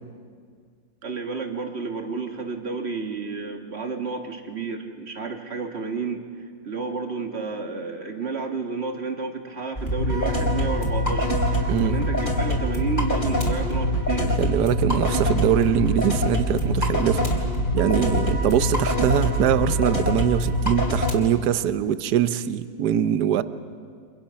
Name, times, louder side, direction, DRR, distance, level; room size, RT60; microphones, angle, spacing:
voice 1, 1.0-6.3 6.6-11.3 11.8-14.4, right 4 dB, 35° right, 4 dB, 1.7 m, -31 dB
sound 1, 9.8-21.1, left 1 dB, 25° left, 3.3 m, -24 dB
voice 2, 14.4-17.3 17.7-23.4, right 10 dB, 65° right, 12 dB, 1.3 m, -23 dB
30.0 x 25.5 x 5.7 m, 2.1 s
omnidirectional pair, 2.1 m